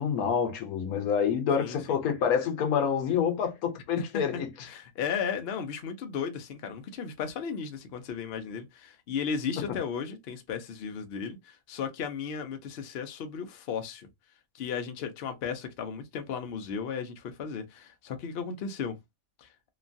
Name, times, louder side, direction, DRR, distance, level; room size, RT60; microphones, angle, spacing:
voice 1, 0.0-4.5 9.7-9.8, left 7 dB, 85° left, 1.2 m, -27 dB
voice 2, 1.6-2.0 4.1-14.1 14.5-19.0 19.4-19.5, left 6 dB, 60° left, 0.7 m, -35 dB
3.0 x 2.2 x 2.5 m
omnidirectional pair, 1.5 m